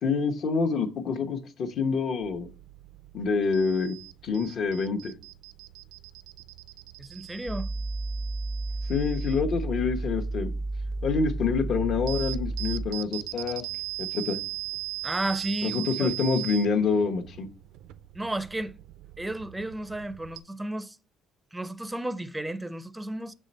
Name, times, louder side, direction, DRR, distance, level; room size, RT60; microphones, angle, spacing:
voice 1, 0.0-2.5 3.1-4.0 4.2-5.1 8.9-10.5 11.0-13.6 14.0-14.4 15.6-17.5, left 5 dB, 60° left, 1.0 m, -27 dB
sound 1, 2.2-20.4, right 16 dB, 90° right, 0.4 m, -40 dB
voice 2, 7.0-7.7 15.0-16.1 18.1-18.7 19.2-21.0 21.5-23.3, right 1 dB, 10° right, 0.4 m, -33 dB
sound 2, 7.5-12.9, right 2 dB, 45° left, 1.3 m, -32 dB
7.4 x 3.3 x 4.1 m
cardioid pair, 110°, 0 cm